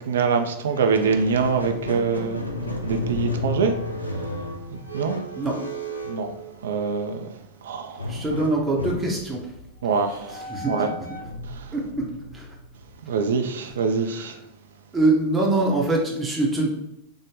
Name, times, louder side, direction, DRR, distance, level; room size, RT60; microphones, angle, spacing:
voice 1, 0.0-2.4 2.8-3.7 4.7-5.2 6.1-6.3 6.6-7.3 7.6-8.0 9.8-10.4 10.7-10.9 13.0-14.4, right 5 dB, 60° right, 0.3 m, -24 dB
Squeak, 0.7-7.0 8.0-13.2, left 1 dB, 85° left, 0.4 m, -33 dB
voice 2, 8.1-9.4 10.3-10.7 11.7-11.8 12.3-12.5 13.6-13.7 14.1-14.3 14.9-16.7, right 2 dB, 15° right, 0.6 m, -23 dB
3.5 x 2.1 x 3.1 m
figure-of-eight pair, 90°, 0 cm